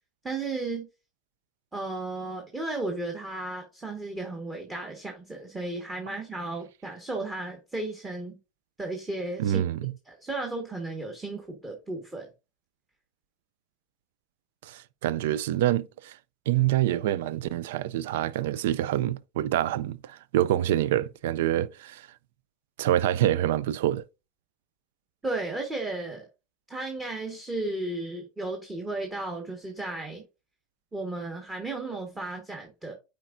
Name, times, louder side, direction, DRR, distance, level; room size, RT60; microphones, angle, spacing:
voice 1, 0.2-0.9 1.7-8.4 8.8-9.6 10.0-12.3 25.2-26.2 26.7-30.2 30.9-32.9, right 2 dB, 15° right, 1.3 m, -34 dB
voice 2, 9.4-9.9 14.6-16.2 16.5-22.1 22.8-24.0, right 12 dB, 80° right, 0.3 m, -26 dB
9.0 x 4.5 x 2.5 m
supercardioid pair, 120°, 0 cm